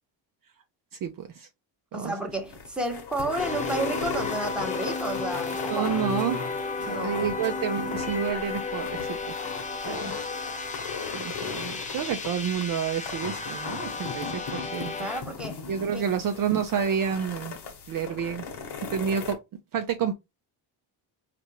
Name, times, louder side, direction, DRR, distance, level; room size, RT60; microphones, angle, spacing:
voice 1, 1.0-1.5 1.9-2.1 5.7-6.4 6.8-9.4 9.9-10.1 11.1-14.9 15.7-17.6 17.9-18.4 18.9-19.4 19.7-20.1, right 7 dB, 50° right, 0.5 m, -29 dB
voice 2, 1.9-5.9 6.9-7.3 9.8-10.2 15.0-15.6 15.9-16.1, right 1 dB, ahead, 0.9 m, -32 dB
sound 1, 2.3-19.3, left 5 dB, 60° left, 1.1 m, -38 dB
sound 2, 3.4-15.2, left 4 dB, 15° left, 0.5 m, -33 dB
4.3 x 2.5 x 2.9 m
cardioid pair, 110°, 45 cm